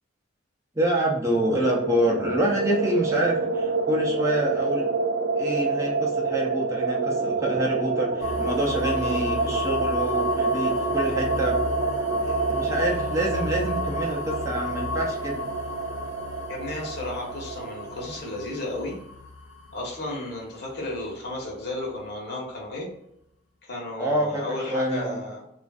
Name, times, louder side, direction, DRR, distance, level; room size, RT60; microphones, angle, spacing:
voice 1, 0.8-4.9 5.3-11.6 12.1-15.4 24.0-25.2, right 1 dB, 15° right, -3 dB, 0.6 m, -27 dB
sound 1, 1.3-18.2, right 4 dB, 75° right, 0.4 m, -28 dB
sound 2, 8.2-22.0, left 4 dB, 75° left, 0.5 m, -35 dB
voice 2, 16.5-18.9 19.7-22.9 23.6-25.4, left 2 dB, 55° left, -2 dB, 1.1 m, -33 dB
3.1 x 2.4 x 2.3 m, 0.78 s
head